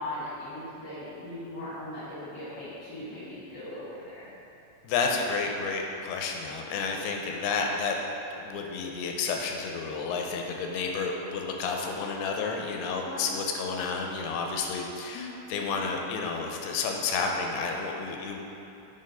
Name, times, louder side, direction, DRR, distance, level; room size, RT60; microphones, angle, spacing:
voice 1, 0.0-4.3 13.0-13.2 15.1-15.3, left 1 dB, 60° left, -11 dB, 1.1 m, -39 dB
voice 2, 4.8-8.0 8.4-18.4, left 4 dB, 80° left, 1 dB, 2.4 m, -31 dB
8.9 x 3.4 x 5.4 m, 3.0 s
omnidirectional pair, 4.8 m